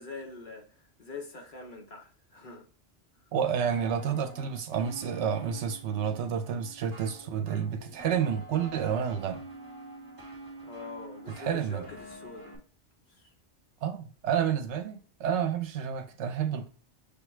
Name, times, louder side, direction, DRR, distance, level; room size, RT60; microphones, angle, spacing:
voice 1, 0.0-2.7 10.6-12.5 13.1-13.3, left 4 dB, 50° left, 0.9 m, -44 dB
voice 2, 3.3-9.4 11.4-11.8 13.8-16.7, right 8 dB, 75° right, 0.9 m, -30 dB
sound 1, 3.6-12.6, right 1 dB, 20° right, 1.0 m, -47 dB
6.6 x 2.3 x 3.1 m
omnidirectional pair, 1.2 m